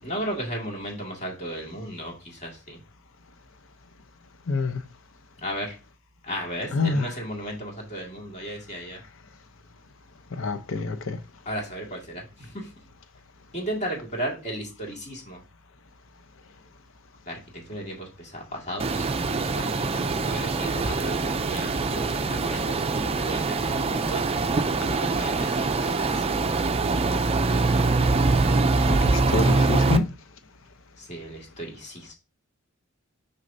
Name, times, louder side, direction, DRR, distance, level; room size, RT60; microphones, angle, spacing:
voice 1, 0.0-2.8 5.4-5.7 6.2-9.0 11.5-12.7 13.5-15.4 17.3-22.7 23.2-26.1 31.0-32.1, equal, 35° left, 2.2 m, -35 dB
voice 2, 4.5-4.8 6.7-7.1 10.3-11.2 25.5-25.6 28.9-30.1, left 3 dB, 65° left, 0.8 m, -27 dB
sound 1, 18.8-30.0, right 3 dB, 30° right, 0.4 m, -24 dB
6.4 x 5.7 x 2.7 m
head